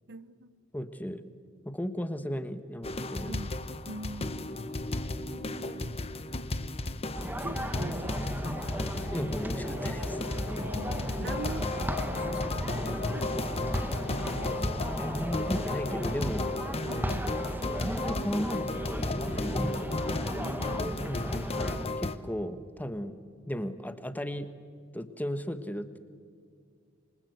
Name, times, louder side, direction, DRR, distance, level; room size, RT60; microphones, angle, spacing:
voice 1, 0.1-0.5 3.2-3.6 3.9-4.7 5.3-6.3 7.4-9.0 10.7-13.6 14.1-14.7 16.8-17.3 20.4-20.9, right 2 dB, 55° right, 13 dB, 1.0 m, -44 dB
voice 2, 0.7-1.2 1.6-3.4 9.1-10.2 14.2-14.3 15.0-16.5 17.7-18.7 19.0-19.9 21.0-21.4 22.0-23.2 23.5-24.5 24.9-26.0, equal, 10° left, 10 dB, 1.3 m, -35 dB
sound 1, 2.8-22.2, left 2 dB, 30° left, 1.0 m, -34 dB
sound 2, 7.1-21.9, equal, 10° right, 1.3 m, -36 dB
Alarm, 9.6-16.7, left 7 dB, 75° left, 0.7 m, -45 dB
27.0 x 24.5 x 8.1 m, 2.2 s
head